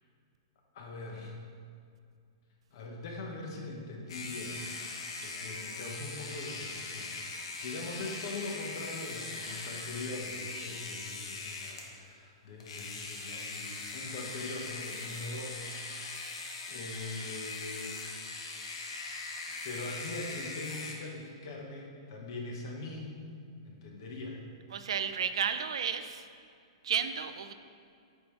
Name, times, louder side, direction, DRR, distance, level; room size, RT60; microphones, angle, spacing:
voice 1, 0.7-1.3 2.7-4.7 5.2-16.4 16.7-18.0 19.6-23.1 23.6-24.4, left 2 dB, 50° left, 0 dB, 1.3 m, -42 dB
sound 1, 4.1-11.9 12.6-20.9, left 3 dB, 75° left, 1.1 m, -41 dB
voice 2, 24.7-26.3 26.8-27.5, right 7 dB, 80° right, 9 dB, 0.5 m, -32 dB
8.1 x 5.6 x 3.3 m, 2.3 s
hypercardioid pair, 160°, 3 cm